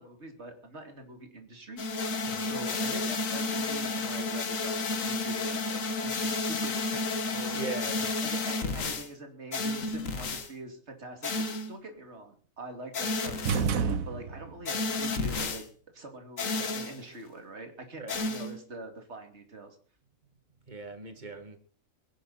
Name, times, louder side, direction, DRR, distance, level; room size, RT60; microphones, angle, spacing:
voice 1, 0.0-7.7 7.9-11.3 11.7-15.6 15.9-19.8, right 2 dB, 50° right, 5 dB, 2.9 m, -44 dB
sound 1, 1.8-9.1 9.5-10.5 11.2-11.8 12.9-13.7 14.7-15.6 16.4-17.0 18.1-18.6, left 3 dB, 70° left, 1.8 m, -31 dB
voice 2, 7.5-8.1 18.0-18.2 20.7-21.6, right 3 dB, 35° right, 7 dB, 2.1 m, -39 dB
sound 2, 13.5-14.7, right 6 dB, 80° right, 1.4 m, -29 dB
22.5 x 11.0 x 4.2 m, 0.41 s
omnidirectional pair, 1.4 m